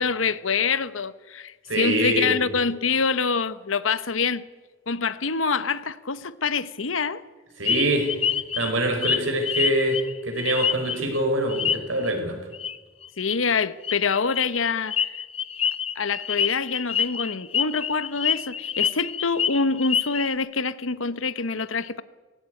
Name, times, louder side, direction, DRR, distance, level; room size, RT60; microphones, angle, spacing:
voice 1, 0.0-4.4 4.9-7.2 13.2-15.1 15.9-22.0, left 5 dB, 90° left, 1.0 m, -25 dB
voice 2, 1.7-2.3 7.6-8.1 8.6-12.4, right 1 dB, 80° right, 5.3 m, -24 dB
sound 1, 7.7-11.2 11.5-12.1 12.5-12.8 13.0-13.4 13.8-20.3, left 8 dB, 30° left, 0.7 m, -26 dB
18.5 x 17.0 x 9.6 m
head